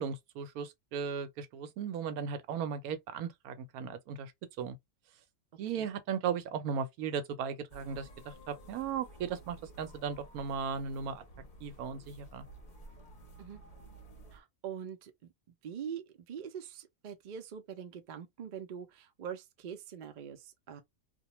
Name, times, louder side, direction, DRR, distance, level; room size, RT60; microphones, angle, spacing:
voice 1, 0.0-4.3 4.6-4.8 5.6-8.1 8.5-11.2 11.6-12.4, right 6 dB, 90° right, 1.1 m, -36 dB
sound 1, 7.7-14.4, right 1 dB, 40° left, 0.7 m, -53 dB
voice 2, 14.3-15.1 15.6-20.8, right 8 dB, 55° right, 0.5 m, -43 dB
2.4 x 2.2 x 2.9 m
omnidirectional pair, 1.5 m